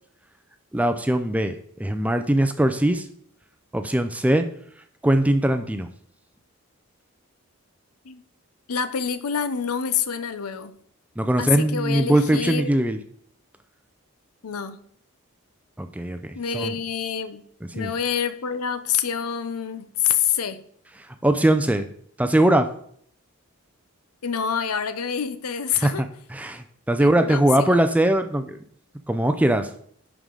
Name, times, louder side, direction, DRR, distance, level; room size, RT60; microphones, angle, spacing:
voice 1, 0.7-3.1 3.7-4.5 5.0-5.9 11.2-13.0 15.8-16.8 17.8-17.9 21.2-21.9 22.2-22.7 25.8-28.6 29.1-29.7, right 1 dB, 5° right, 8 dB, 0.4 m, -21 dB
voice 2, 8.7-10.8 11.4-12.7 14.4-14.8 16.3-17.4 17.7-20.6 24.2-26.1 27.0-27.4 27.7-27.8, left 7 dB, 90° left, 12 dB, 0.7 m, -27 dB
10.5 x 4.8 x 3.8 m, 0.64 s
head